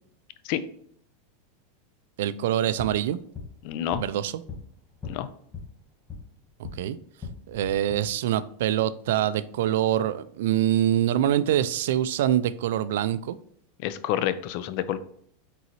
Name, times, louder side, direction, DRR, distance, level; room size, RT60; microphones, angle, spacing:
voice 1, 2.2-3.2 4.0-4.3 6.8-7.0 7.5-13.4, right 11 dB, 75° right, 15 dB, 0.3 m, -25 dB
sound 1, 2.8-6.8 7.1-8.0, left 5 dB, 20° left, 1.1 m, -41 dB
voice 2, 3.6-4.0 5.0-5.3 13.8-15.0, left 11 dB, 55° left, 14 dB, 0.4 m, -28 dB
4.0 x 3.8 x 3.0 m, 0.64 s
hypercardioid pair, 120°, 0 cm